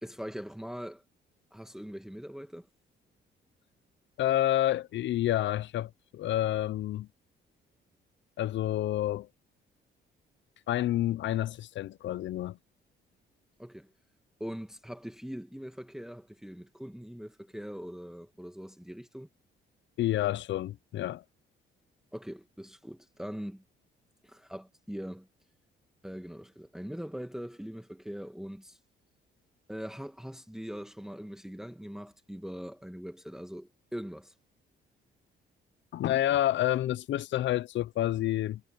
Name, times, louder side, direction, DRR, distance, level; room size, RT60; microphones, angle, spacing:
voice 1, 0.0-1.0 1.5-2.7 13.6-13.9 14.4-19.3 22.1-23.6 24.2-25.3 26.0-28.8 29.7-34.3, equal, ahead, 1.8 m, -42 dB
voice 2, 4.2-7.1 8.4-9.3 10.7-12.6 20.0-21.2 35.9-38.6, left 13 dB, 70° left, 0.6 m, -29 dB
cardioid pair, 90°, 20 cm